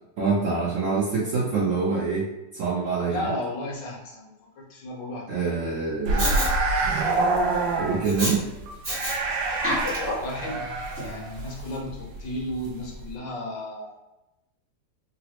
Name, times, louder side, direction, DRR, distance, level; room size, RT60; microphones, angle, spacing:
voice 1, 0.2-2.3 2.5-3.3 5.3-6.3 7.8-8.4, right 4 dB, 65° right, -5 dB, 0.8 m, -25 dB
voice 2, 3.1-5.6 10.2-10.7 11.0-14.0, left 1 dB, 85° left, -2 dB, 1.5 m, -34 dB
sound 1, 6.0-12.7 12.9-13.1, right 3 dB, 90° right, 1.3 m, -26 dB
Respiratory sounds, 6.2-6.5 8.0-8.3 8.8-9.2 9.5-10.3 11.0-11.1, equal, 15° right, 0.7 m, -28 dB
3.9 x 2.0 x 2.8 m, 0.95 s
omnidirectional pair, 1.9 m